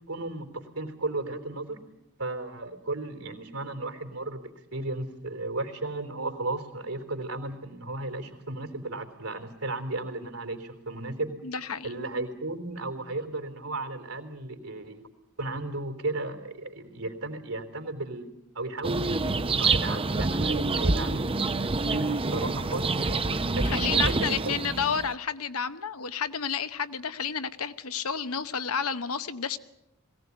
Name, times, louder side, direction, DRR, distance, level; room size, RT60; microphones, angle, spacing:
voice 1, 0.1-1.8 2.2-11.3 11.8-15.0 15.4-18.3 18.6-19.2 19.5-24.6, right 2 dB, 75° right, 5 dB, 3.8 m, -35 dB
voice 2, 11.4-11.9 23.6-29.6, left 6 dB, 70° left, 12 dB, 1.1 m, -31 dB
sound 1, 18.8-25.1, right 3 dB, 25° right, 0.8 m, -27 dB
21.5 x 17.0 x 9.9 m, 0.86 s
head